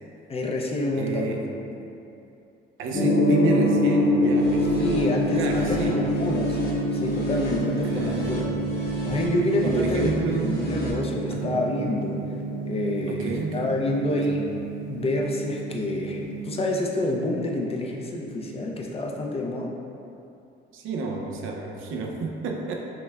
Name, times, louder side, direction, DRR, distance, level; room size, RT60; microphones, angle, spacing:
voice 1, 0.3-1.4 4.7-6.6 6.9-8.4 9.0-10.1 10.4-12.2 12.6-14.5 14.9-19.8, left 1 dB, 30° left, -1 dB, 0.4 m, -27 dB
voice 2, 0.9-1.5 2.8-6.2 7.8-8.5 9.6-10.6 11.3-11.5 13.1-14.4 20.7-22.7, right 3 dB, 85° right, 1 dB, 0.5 m, -31 dB
Gong, 2.9-16.7, equal, 90° left, 1.0 m, -26 dB
sound 1, 4.3-10.9, left 1 dB, 55° left, 0.9 m, -38 dB
5.7 x 2.1 x 2.2 m, 2.7 s
cardioid pair, 90°, 20 cm